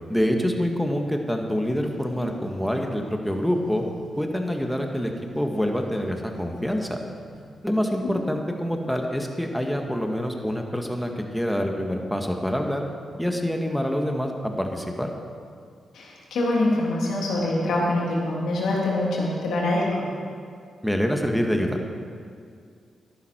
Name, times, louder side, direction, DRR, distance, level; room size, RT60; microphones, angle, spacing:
voice 1, 0.1-3.8 4.2-7.0 7.6-12.9 13.2-15.1 20.8-21.8, equal, ahead, 2 dB, 1.9 m, -26 dB
sound 1, 1.6-4.2 4.5-7.4, right 3 dB, 75° right, 2.9 m, -45 dB
voice 2, 15.9-20.0, left 1 dB, 75° left, -4 dB, 3.1 m, -24 dB
13.5 x 11.0 x 4.7 m, 2.3 s
hypercardioid pair, 40°, 0 cm